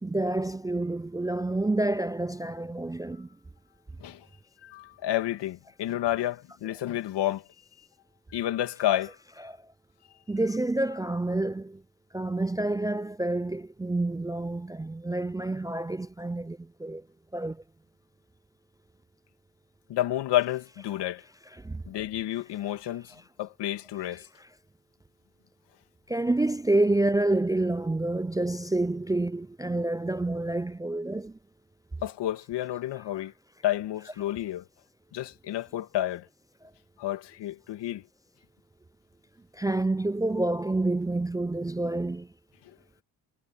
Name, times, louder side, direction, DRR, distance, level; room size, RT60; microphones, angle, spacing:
voice 1, 0.0-3.3 9.4-9.6 10.3-11.8 12.1-17.0 17.3-17.6 21.6-21.8 26.1-31.3 39.6-42.3, right 2 dB, 10° right, 0.4 m, -28 dB
voice 2, 4.6-7.4 8.3-9.2 19.9-21.2 21.9-24.3 32.0-33.3 33.6-34.6 35.1-36.3 37.0-38.0, left 13 dB, 80° left, 2.6 m, -30 dB
supercardioid pair, 60°, 41 cm